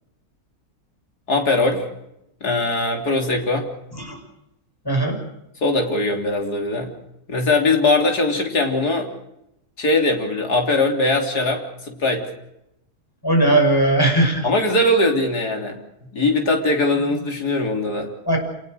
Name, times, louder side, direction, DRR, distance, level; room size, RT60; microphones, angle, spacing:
voice 1, 1.3-1.9 2.4-3.7 5.6-6.9 7.3-9.1 9.8-12.2 14.4-15.8 16.1-18.1, left 2 dB, 80° left, 3 dB, 4.0 m, -20 dB
voice 2, 4.8-5.2 13.2-14.5 18.3-18.4, right 1 dB, 15° left, 3 dB, 6.1 m, -18 dB
27.5 x 18.5 x 6.6 m, 0.85 s
omnidirectional pair, 1.6 m